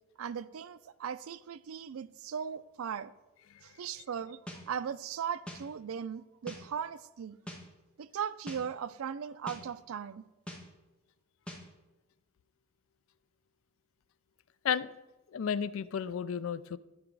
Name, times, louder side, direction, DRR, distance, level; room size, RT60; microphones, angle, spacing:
voice 1, 0.2-3.1 3.6-7.4 8.0-10.2, right 7 dB, 90° right, 0.4 m, -38 dB
sound 1, 4.5-4.6 5.5-5.6 6.5-6.6 7.5-7.6 8.5-8.6 9.5-9.6 10.5-10.6 11.5-11.6, equal, 5° left, 1.1 m, -42 dB
voice 2, 15.3-16.8, left 7 dB, 75° left, 0.4 m, -32 dB
12.5 x 4.9 x 4.6 m
head